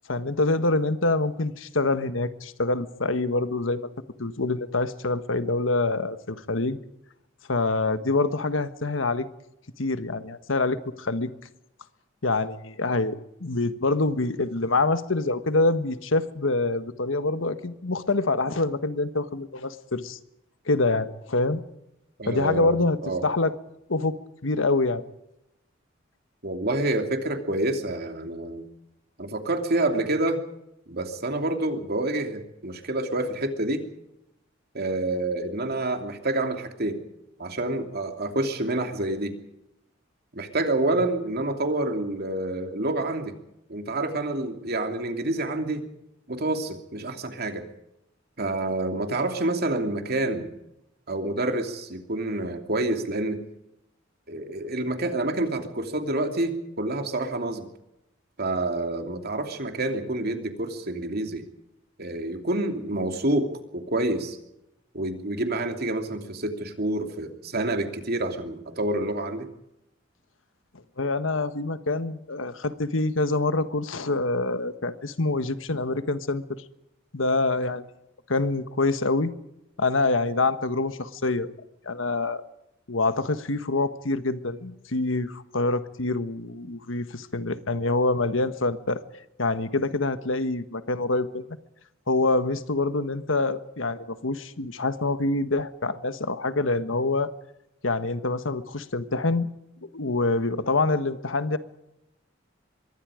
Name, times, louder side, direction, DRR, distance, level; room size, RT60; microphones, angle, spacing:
voice 1, 0.1-3.9 4.2-6.8 7.5-9.3 9.8-11.3 12.2-13.1 13.4-20.2 20.7-21.6 22.3-23.0 23.2-23.5 23.9-24.2 24.4-25.0 71.0-76.6 77.1-77.8 78.3-79.3 79.8-81.5 81.8-82.4 82.9-89.0 89.4-91.4 92.1-97.3 97.8-99.5 99.8-101.6, left 2 dB, 85° left, 11 dB, 1.4 m, -26 dB
voice 2, 22.2-23.2 26.4-28.6 29.2-30.4 30.9-33.8 34.7-37.0 37.4-39.3 40.3-43.4 43.7-45.8 46.3-47.6 48.4-50.5 51.1-53.4 54.3-57.7 58.4-61.4 62.0-63.5 63.7-64.4 64.9-69.5, right 2 dB, 55° right, 5 dB, 2.9 m, -28 dB
25.0 x 22.5 x 5.1 m, 0.86 s
head